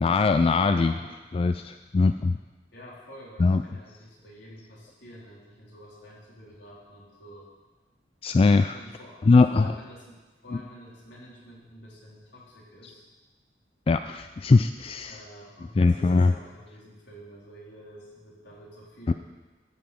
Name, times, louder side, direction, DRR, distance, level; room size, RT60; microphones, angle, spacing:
voice 1, 0.0-0.9 1.3-2.4 3.4-3.6 8.2-8.8 9.2-9.7 13.9-15.2 15.8-16.3 19.1-19.2, left 3 dB, 30° left, 9 dB, 0.3 m, -21 dB
voice 2, 0.7-1.1 2.7-7.5 8.7-9.2 9.5-13.0 15.1-19.1, equal, 75° left, -5 dB, 4.0 m, -48 dB
13.5 x 6.0 x 7.0 m, 1.2 s
head